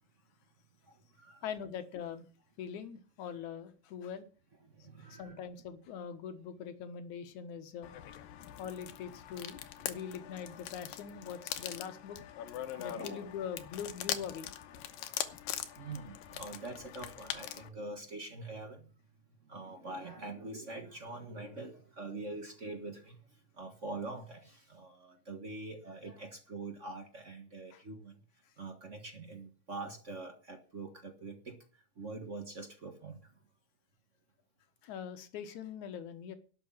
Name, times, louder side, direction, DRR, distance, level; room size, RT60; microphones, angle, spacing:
voice 1, 0.9-1.4 4.7-5.4 12.6-13.2 14.8-15.1 15.8-18.8 19.4-23.2 23.5-28.1 28.6-31.6 32.0-33.3, right 2 dB, 55° right, 5 dB, 0.7 m, -44 dB
voice 2, 1.4-2.3 2.6-4.3 5.0-7.9 8.6-9.6 9.9-12.2 12.8-14.5 27.7-27.8 34.8-36.3, left 7 dB, 65° left, 10 dB, 2.5 m, -42 dB
sound 1, 7.8-17.7, left 11 dB, 85° left, 2.7 m, -42 dB
12.0 x 6.9 x 8.7 m, 0.38 s
omnidirectional pair, 4.0 m